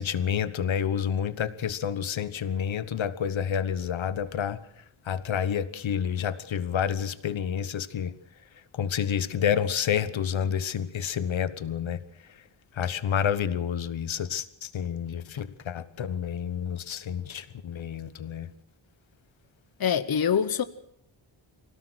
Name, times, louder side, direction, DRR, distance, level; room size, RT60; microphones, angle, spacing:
voice 1, 0.0-4.6 5.0-8.2 8.7-12.0 12.3-12.4 12.7-18.5, left 8 dB, 75° left, 1.3 m, -29 dB
voice 2, 19.8-20.6, left 7 dB, 50° left, 1.1 m, -24 dB
25.0 x 17.5 x 6.3 m
wide cardioid pair, 135°, 47 cm